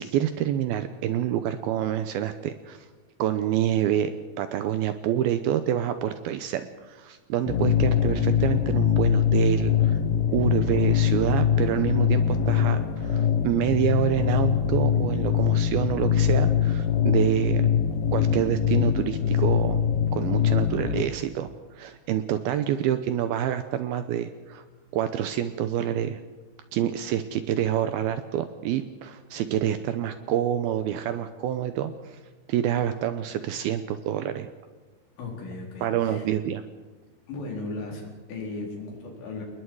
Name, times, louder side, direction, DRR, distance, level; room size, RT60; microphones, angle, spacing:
voice 1, 0.0-2.9 3.2-4.1 4.4-10.0 10.3-17.7 18.1-19.8 20.1-21.5 21.8-24.6 24.9-26.2 26.7-32.2 32.5-34.5 35.8-36.6, right 11 dB, 80° right, 10 dB, 2.3 m, -27 dB
sound 1, 7.5-21.0, left 8 dB, 65° left, 2.6 m, -23 dB
voice 2, 35.2-36.2 37.3-39.4, left 3 dB, 90° left, -1 dB, 6.6 m, -36 dB
28.5 x 20.5 x 4.8 m, 1.3 s
omnidirectional pair, 5.1 m